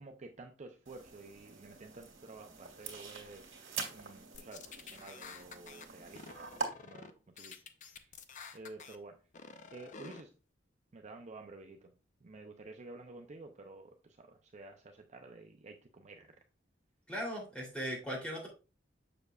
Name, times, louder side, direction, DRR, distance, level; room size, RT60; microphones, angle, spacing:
voice 1, 0.0-3.4 3.9-6.5 6.8-8.1 8.5-9.2 9.7-10.3 10.9-11.9 12.2-16.3, right 3 dB, 40° right, 0.5 m, -51 dB
sound 1, 0.9-6.7, right 4 dB, 90° right, 2.0 m, -44 dB
sound 2, 4.3-5.9 6.2-7.1 7.4-9.0 9.3-10.2, left 5 dB, 40° left, 0.6 m, -50 dB
voice 2, 17.1-18.5, equal, 5° left, 2.9 m, -38 dB
6.8 x 6.5 x 2.3 m
head